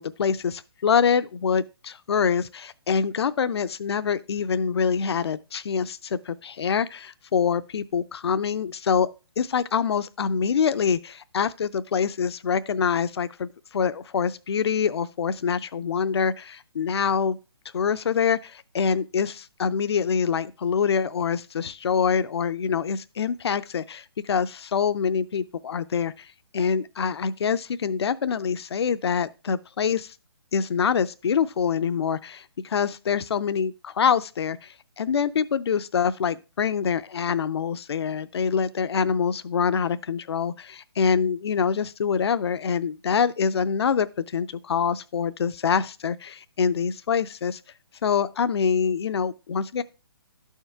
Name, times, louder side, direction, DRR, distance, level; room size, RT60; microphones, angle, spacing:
voice 1, 0.0-9.1 9.4-17.4 17.7-30.1 30.5-47.6 48.0-49.8, left 6 dB, 75° left, 0.4 m, -25 dB
12.0 x 4.5 x 3.4 m
hypercardioid pair, 150°, 14 cm